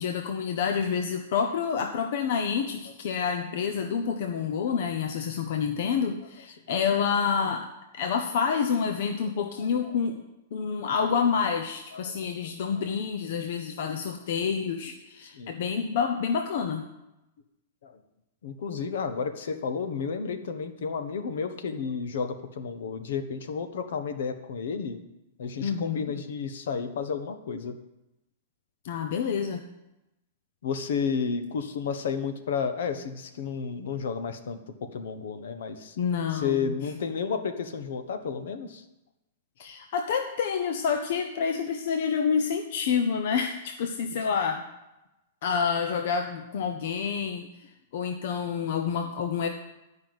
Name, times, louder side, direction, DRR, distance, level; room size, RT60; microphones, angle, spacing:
voice 1, 0.0-7.7 7.9-10.2 10.5-16.9 25.6-26.1 28.8-29.6 36.0-36.7 39.6-44.6 45.4-47.5 47.9-49.5, left 6 dB, 50° left, 5 dB, 0.7 m, -28 dB
voice 2, 9.6-10.0 11.9-12.2 12.4-12.9 15.3-15.6 17.8-18.0 18.4-25.0 25.4-27.7 30.6-36.0 36.3-38.8, left 6 dB, 65° left, 9 dB, 1.1 m, -32 dB
11.0 x 5.7 x 7.8 m, 0.94 s
supercardioid pair, 170°, 0 cm